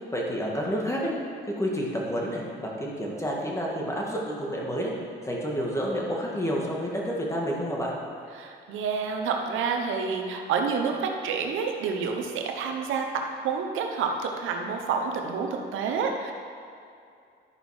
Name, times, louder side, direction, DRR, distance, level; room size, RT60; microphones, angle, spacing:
voice 1, 0.1-1.1 1.5-4.9 5.3-7.9, equal, 15° left, -2 dB, 1.8 m, -29 dB
voice 2, 8.3-16.3, right 5 dB, 85° right, 3 dB, 0.9 m, -29 dB
11.5 x 5.2 x 4.8 m, 2.4 s
cardioid pair, 90°, 20 cm